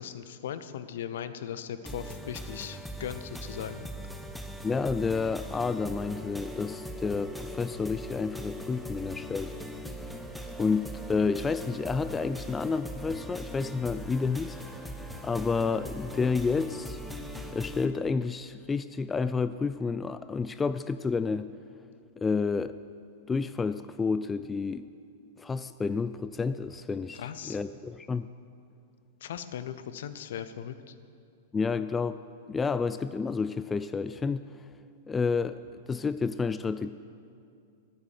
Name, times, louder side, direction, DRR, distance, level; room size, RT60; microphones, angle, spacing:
voice 1, 0.0-3.9 27.1-27.6 29.2-30.9, left 9 dB, 65° left, 12 dB, 0.7 m, -38 dB
sound 1, 1.9-17.9, equal, ahead, 0.9 m, -40 dB
voice 2, 4.6-9.5 10.6-14.8 15.2-17.0 17.5-21.5 22.2-22.8 23.3-24.9 25.4-28.3 31.5-32.2 32.5-34.5 35.1-36.9, left 4 dB, 15° left, 13 dB, 0.3 m, -30 dB
11.0 x 8.7 x 6.5 m, 2.4 s
figure-of-eight pair, 100°, 0 cm